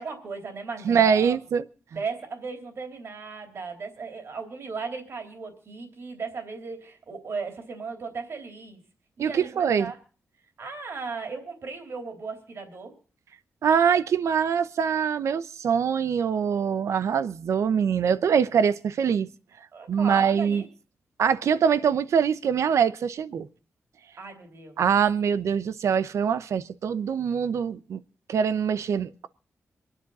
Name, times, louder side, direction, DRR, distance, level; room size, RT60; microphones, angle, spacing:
voice 1, 0.0-1.4 2.0-8.8 9.2-10.0 10.6-12.9 19.7-20.7 24.2-24.8, right 4 dB, 60° right, 3.5 m, -36 dB
voice 2, 0.8-1.7 9.2-9.9 13.6-19.3 19.9-20.6 21.2-23.5 24.8-28.0 28.3-29.3, right 7 dB, 80° right, 0.8 m, -23 dB
26.5 x 10.0 x 4.1 m
wide cardioid pair, 130°, 5 cm